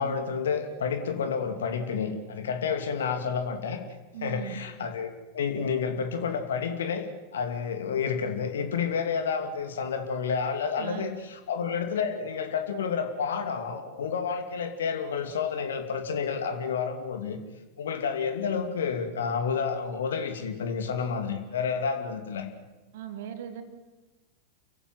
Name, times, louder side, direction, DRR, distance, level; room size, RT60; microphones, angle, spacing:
voice 1, 0.0-3.8 4.2-17.4 17.8-22.5, left 6 dB, 65° left, 7 dB, 2.7 m, -30 dB
voice 2, 4.1-4.6 10.8-11.1 22.9-23.6, right 9 dB, 55° right, 7 dB, 3.1 m, -38 dB
29.5 x 15.0 x 9.4 m, 1.2 s
figure-of-eight pair, 90°, 0 cm